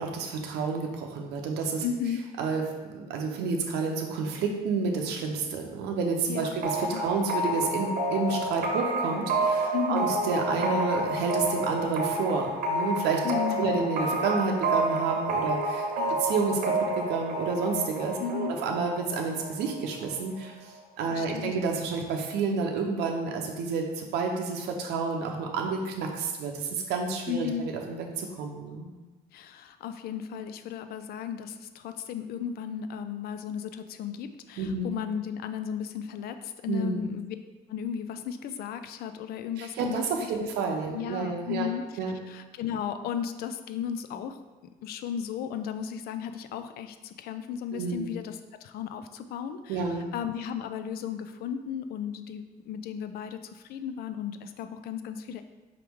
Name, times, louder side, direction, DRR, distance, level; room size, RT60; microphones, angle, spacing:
voice 1, 0.0-1.8 2.4-13.2 13.6-15.9 16.2-20.6 21.0-28.9 34.6-34.9 36.7-37.0 39.6-40.0 40.3-41.7 42.0-42.1 47.7-48.1 49.7-50.1, right 4 dB, 85° right, 2 dB, 0.6 m, -30 dB
voice 2, 1.8-2.3 6.3-6.5 6.9-7.1 9.7-10.1 13.2-13.8 16.0-16.2 18.2-18.5 21.1-21.6 27.3-27.7 29.3-37.4 37.7-40.1 40.4-40.5 40.9-41.8 42.2-44.4 44.8-55.4, left 8 dB, 65° left, 10 dB, 0.4 m, -35 dB
sound 1, 6.6-20.1, right 1 dB, 60° right, 0.8 m, -29 dB
4.9 x 3.0 x 3.5 m, 1.2 s
cardioid pair, 110°, 17 cm